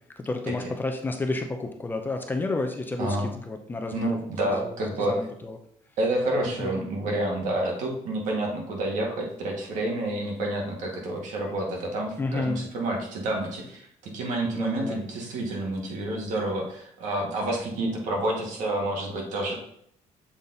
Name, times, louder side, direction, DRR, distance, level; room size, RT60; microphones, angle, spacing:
voice 1, 0.2-5.6 6.4-6.8 12.2-12.6 14.5-15.0, left 2 dB, 15° left, 4 dB, 0.6 m, -31 dB
voice 2, 3.0-3.4 3.9-5.2 6.0-19.6, right 1 dB, 70° right, -1 dB, 1.9 m, -29 dB
7.2 x 4.0 x 4.0 m, 0.69 s
cardioid pair, 165°, 13 cm